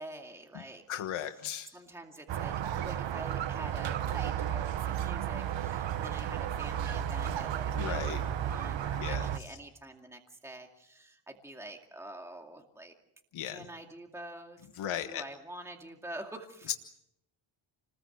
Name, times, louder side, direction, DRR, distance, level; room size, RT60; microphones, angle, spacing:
voice 1, 0.0-0.8 1.3-1.4 1.7-12.9 13.4-16.7, right 1 dB, 5° right, 2 dB, 2.3 m, -47 dB
voice 2, 0.9-1.7 7.7-8.2 9.0-9.2 13.3-13.6 14.8-15.2 16.7-16.8, left 10 dB, 80° left, 6 dB, 1.5 m, -35 dB
Squeak, 2.3-9.4, right 10 dB, 65° right, 1.2 m, -33 dB
30.0 x 20.5 x 7.9 m, 0.81 s
cardioid pair, 145°, 49 cm